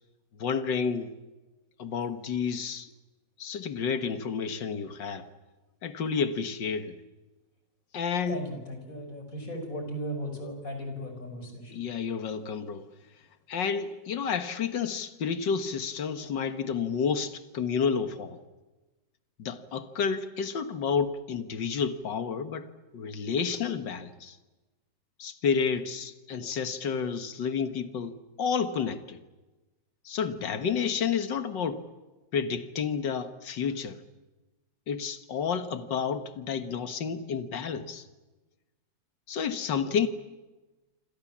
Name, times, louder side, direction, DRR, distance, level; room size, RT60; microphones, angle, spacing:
voice 1, 0.4-1.1 1.8-2.9 3.4-5.3 5.8-6.9 7.9-8.4 11.7-12.9 13.5-18.4 19.4-22.7 22.9-24.4 25.2-29.2 30.1-31.8 32.3-34.0 34.9-38.1 39.3-40.1, left 6 dB, 80° left, 2.1 m, -30 dB
voice 2, 8.3-11.7, equal, 50° left, 5.7 m, -36 dB
27.0 x 26.0 x 7.4 m
omnidirectional pair, 1.9 m